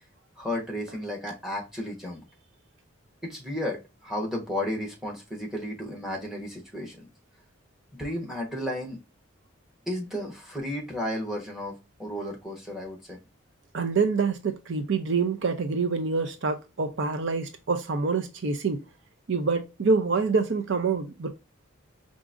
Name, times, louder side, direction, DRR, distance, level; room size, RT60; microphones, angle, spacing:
voice 1, 0.4-2.2 3.2-7.1 7.9-9.0 9.9-13.2, left 1 dB, ahead, 1.0 m, -33 dB
voice 2, 13.7-18.8 19.3-21.3, right 4 dB, 60° right, 0.5 m, -26 dB
4.9 x 2.5 x 2.4 m
head